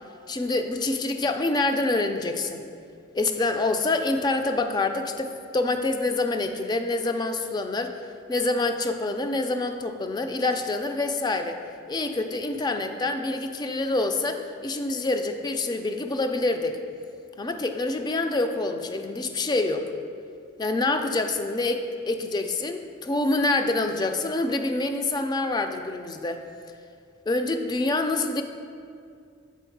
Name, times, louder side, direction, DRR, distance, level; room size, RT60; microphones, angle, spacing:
voice 1, 0.3-2.6 3.1-7.9 8.3-11.6 11.9-16.8 17.4-19.9 20.6-26.4 27.3-28.4, left 2 dB, 20° left, 7 dB, 0.3 m, -26 dB
7.1 x 4.2 x 4.6 m, 2.3 s
head